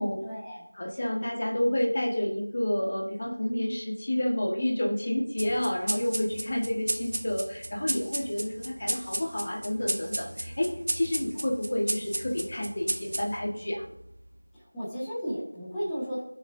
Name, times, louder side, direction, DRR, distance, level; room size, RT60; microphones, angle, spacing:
voice 1, 0.0-0.6 14.5-16.2, equal, 5° left, -12 dB, 1.6 m, -34 dB
voice 2, 0.7-13.8, left 1 dB, 40° left, 0 dB, 1.5 m, -29 dB
sound 1, 5.4-14.3, right 1 dB, 50° right, 1.1 m, -34 dB
19.0 x 6.6 x 2.7 m, 0.74 s
figure-of-eight pair, 175°, 0 cm